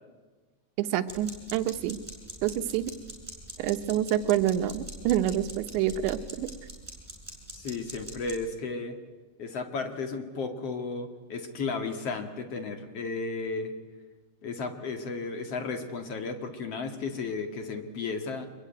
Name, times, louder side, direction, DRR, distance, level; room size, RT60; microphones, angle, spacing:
voice 1, 0.8-2.0 2.4-2.8 3.6-6.5, right 11 dB, 85° right, 10 dB, 3.4 m, -27 dB
sound 1, 1.1-8.4, right 2 dB, 5° right, 6.2 m, -43 dB
voice 2, 7.5-9.0 9.4-13.7 14.4-18.5, left 4 dB, 50° left, 6 dB, 2.1 m, -34 dB
26.0 x 22.0 x 9.3 m, 1.3 s
omnidirectional pair, 5.1 m